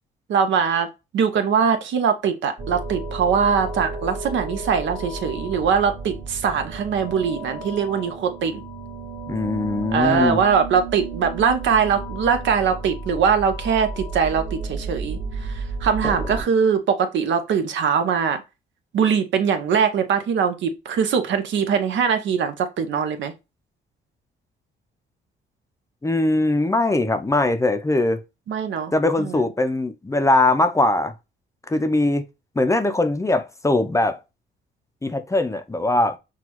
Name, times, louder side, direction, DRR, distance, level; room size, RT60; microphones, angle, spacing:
voice 1, 0.3-0.9 1.1-8.6 9.9-18.4 18.9-23.3 28.5-28.9 29.2-29.4, right 6 dB, 70° right, 0.8 m, -22 dB
sound 1, 2.6-16.4, right 3 dB, 45° right, 1.3 m, -33 dB
voice 2, 9.3-10.4 16.0-16.1 26.0-28.2 28.9-31.1 31.7-32.2 32.6-34.2 35.0-36.2, left 2 dB, 15° left, 0.5 m, -21 dB
6.0 x 2.4 x 2.9 m
cardioid pair, 90°, 20 cm